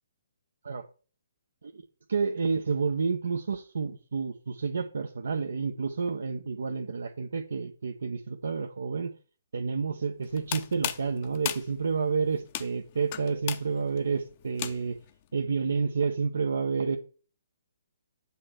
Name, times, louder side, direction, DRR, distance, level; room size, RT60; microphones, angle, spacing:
voice 1, 2.1-9.1 9.5-15.0 15.3-17.0, right 5 dB, 60° right, 5 dB, 0.9 m, -30 dB
sound 1, 10.2-15.1, left 12 dB, 35° left, 0.7 m, -37 dB
8.5 x 4.2 x 6.4 m, 0.37 s
figure-of-eight pair, 130°, 0 cm